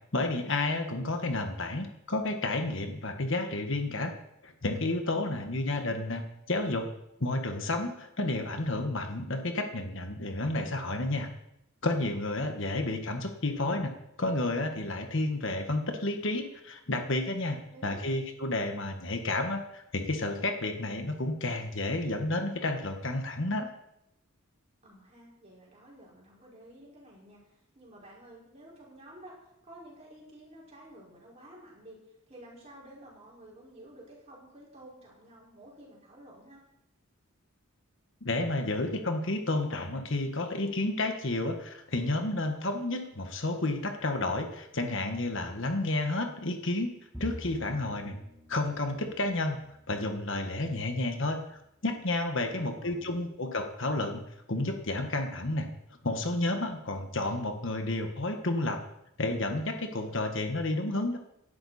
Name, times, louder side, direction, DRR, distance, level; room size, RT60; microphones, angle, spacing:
voice 1, 0.1-4.1 4.4-6.9 7.2-11.3 11.8-13.9 14.2-23.7 38.2-46.9 47.2-48.1 48.5-49.6 49.9-54.2 54.5-55.7 56.0-58.8 59.2-61.2, left 2 dB, 60° left, 5 dB, 1.4 m, -31 dB
voice 2, 5.1-5.6 17.7-18.0 24.8-36.6 52.3-53.1, right 1 dB, 30° right, -5 dB, 5.2 m, -52 dB
Bowed string instrument, 47.1-50.6, left 1 dB, ahead, 1.6 m, -47 dB
16.5 x 11.5 x 4.3 m, 0.82 s
head